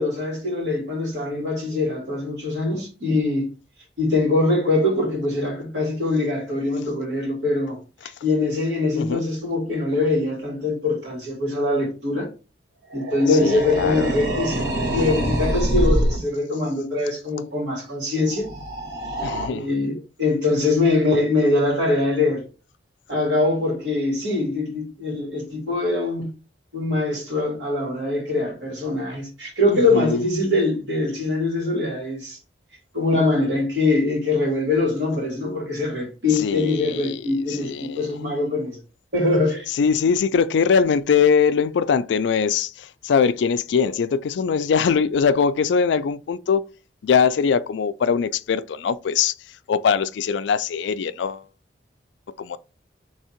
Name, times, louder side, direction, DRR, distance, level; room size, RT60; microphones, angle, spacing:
voice 1, 0.0-3.5 4.0-12.3 12.9-18.5 19.5-22.4 23.1-26.3 26.7-32.4 32.9-38.8 39.1-39.7, left 2 dB, 75° right, 2.3 m, -23 dB
sound 1, 12.9-16.2 18.3-19.5, right 1 dB, 60° right, 1.4 m, -24 dB
voice 2, 13.4-14.1 19.2-19.7 29.7-30.2 36.4-37.2 37.5-38.2 39.8-46.7 47.0-49.3 49.7-51.4 52.4-52.6, left 6 dB, 80° left, 0.3 m, -21 dB
3.6 x 3.3 x 4.3 m
head